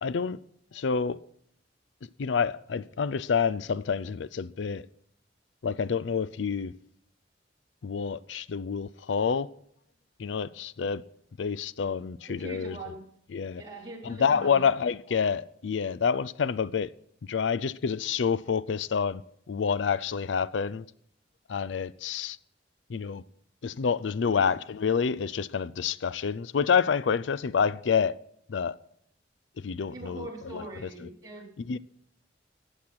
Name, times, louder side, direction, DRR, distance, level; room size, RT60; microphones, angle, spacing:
voice 1, 0.0-0.4 0.7-1.2 2.2-4.8 5.6-6.7 7.8-9.5 10.2-11.0 11.4-12.8 13.3-13.6 14.0-16.9 17.3-19.2 19.5-20.8 21.5-22.4 22.9-23.2 23.6-28.2 28.5-28.8 29.6-30.6 31.0-31.1 31.7-31.8, left 6 dB, 80° left, 0.5 m, -28 dB
voice 2, 12.4-13.0 13.6-14.8 24.2-24.4 29.9-31.4, right 2 dB, 20° right, 4.0 m, -42 dB
16.0 x 10.0 x 6.1 m
head